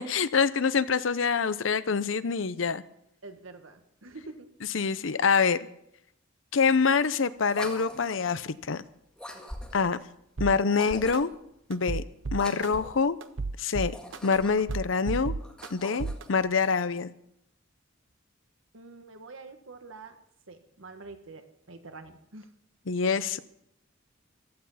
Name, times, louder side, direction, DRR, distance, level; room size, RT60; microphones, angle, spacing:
voice 1, 0.0-2.8 4.7-5.6 6.5-8.8 9.7-10.0 10.4-11.3 11.7-12.0 12.3-13.2 13.6-14.0 14.2-15.3 15.7-17.1 22.9-23.4, left 5 dB, 70° left, 15 dB, 0.7 m, -25 dB
voice 2, 3.2-4.5 18.7-20.2 20.5-22.5, right 3 dB, 85° right, 7 dB, 1.5 m, -46 dB
sound 1, 7.5-8.3 9.2-10.0 10.7-11.4 12.3-13.1 13.8-14.8 15.4-16.3, equal, 5° left, 1.9 m, -42 dB
sound 2, 10.4-10.6 11.1-11.2 11.7-12.7 13.2-14.4 14.7-15.7 16.0-16.2, right 3 dB, 65° right, 0.7 m, -32 dB
15.5 x 11.5 x 5.6 m, 0.77 s
head